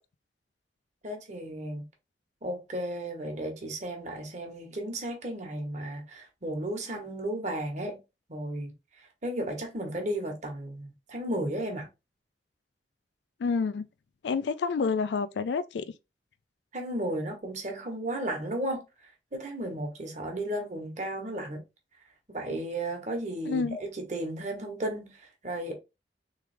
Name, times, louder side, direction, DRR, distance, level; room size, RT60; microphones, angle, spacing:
voice 1, 1.0-1.9 2.4-8.0 8.3-8.7 9.2-11.9 16.7-18.8 19.3-21.6 22.3-25.7, right 1 dB, 40° right, 1.2 m, -34 dB
voice 2, 13.4-13.8 14.2-15.8 23.5-23.8, left 5 dB, 70° left, 0.4 m, -28 dB
3.6 x 3.3 x 3.3 m
head